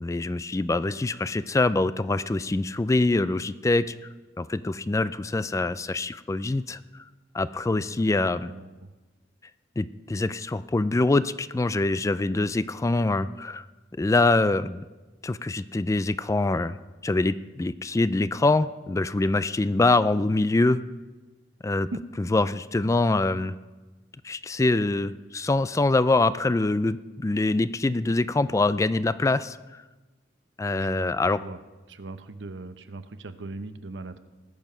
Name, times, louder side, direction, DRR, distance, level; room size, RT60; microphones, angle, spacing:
voice 1, 0.0-3.9 4.4-6.8 7.3-8.5 9.8-13.6 14.0-14.8 15.2-16.8 17.0-20.8 21.6-21.9 22.3-23.5 24.2-29.6 30.6-31.4, left 2 dB, 15° left, 14 dB, 0.3 m, -24 dB
voice 2, 7.7-8.9 21.9-22.0 30.7-31.6 31.9-34.2, right 2 dB, 80° right, 11 dB, 0.7 m, -40 dB
19.5 x 7.0 x 5.6 m, 1.2 s
head